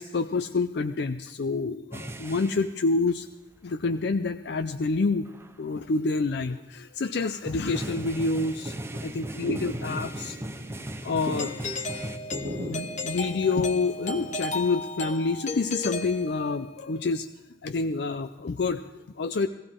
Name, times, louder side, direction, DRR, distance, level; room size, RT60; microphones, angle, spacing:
voice 1, 0.0-3.3 3.6-5.3 5.6-10.4 11.0-11.5 12.4-17.3 17.6-19.5, left 3 dB, 65° left, 8 dB, 0.5 m, -28 dB
sound 1, 1.9-2.7 4.1-4.2 4.6-4.7 5.2-5.5 7.2-12.2, right 1 dB, 15° right, 0.6 m, -38 dB
sound 2, 8.0-15.1, equal, 30° right, 3.0 m, -39 dB
Doorbell, 11.4-16.8, left 2 dB, 45° left, 1.1 m, -35 dB
18.5 x 15.0 x 3.7 m, 1.0 s
head